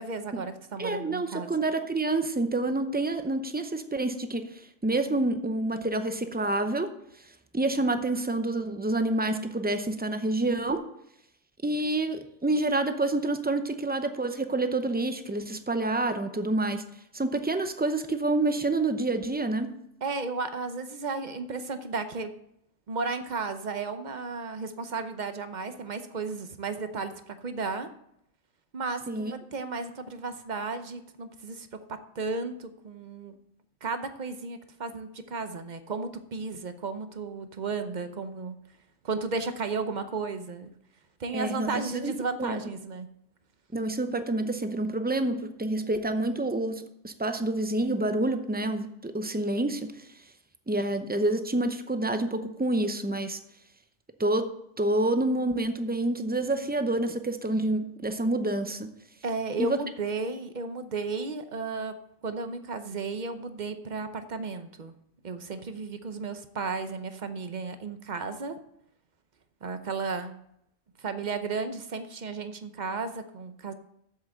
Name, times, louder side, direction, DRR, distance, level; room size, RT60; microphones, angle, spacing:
voice 1, 0.0-1.5 20.0-22.3 22.9-27.9 28.7-31.7 32.1-33.3 33.8-38.5 39.0-40.7 41.2-43.1 59.2-61.9 62.2-64.9 65.2-68.6 69.6-70.4 71.0-73.7, right 4 dB, 40° right, 9 dB, 0.7 m, -34 dB
voice 2, 0.8-6.9 7.5-10.8 11.6-16.8 17.1-19.7 29.1-29.3 41.3-42.1 42.4-42.6 43.7-50.1 50.7-53.4 54.2-54.5 54.8-58.9 59.6-59.8, right 2 dB, 15° right, 8 dB, 0.4 m, -28 dB
7.5 x 7.1 x 7.6 m, 0.76 s
omnidirectional pair, 1.4 m